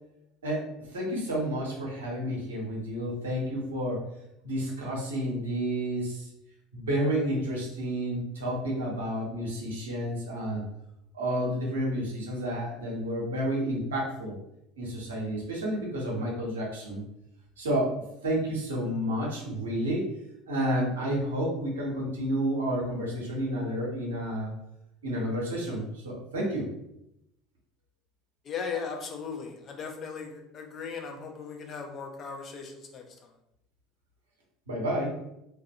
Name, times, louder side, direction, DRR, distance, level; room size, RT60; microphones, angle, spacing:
voice 1, 0.4-4.1 4.4-6.3 6.7-10.6 11.1-14.4 14.8-17.0 17.6-20.1 20.5-24.5 25.0-26.7 34.7-35.2, equal, 75° right, -3 dB, 0.7 m, -30 dB
voice 2, 28.4-33.3, left 5 dB, 40° left, 2 dB, 0.5 m, -37 dB
2.3 x 2.1 x 2.6 m, 0.82 s
figure-of-eight pair, 70°, 0 cm